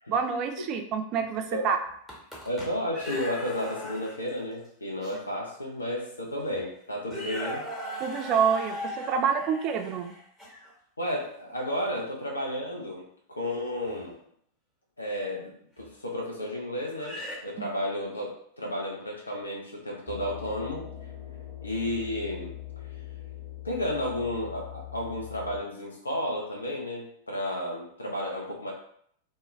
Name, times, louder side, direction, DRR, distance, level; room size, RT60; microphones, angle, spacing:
voice 1, 0.1-1.8 8.0-10.1 17.6-17.7, right 6 dB, 40° right, 6 dB, 0.3 m, -27 dB
sound 1, 1.9-4.4 5.0-5.1 6.0-6.1 6.4-6.6 7.0-10.7 13.9-14.0 15.8-15.9 16.9-17.4, equal, 5° left, 0.9 m, -38 dB
voice 2, 2.4-7.6 11.0-14.2 15.0-17.2 17.4-20.9 21.6-22.5 22.8-22.9 23.6-28.7, left 1 dB, 80° left, -1 dB, 0.6 m, -32 dB
sound 2, 20.1-25.6, left 13 dB, 55° left, 1.1 m, -42 dB
2.1 x 2.1 x 3.0 m, 0.66 s
figure-of-eight pair, 90°, 0 cm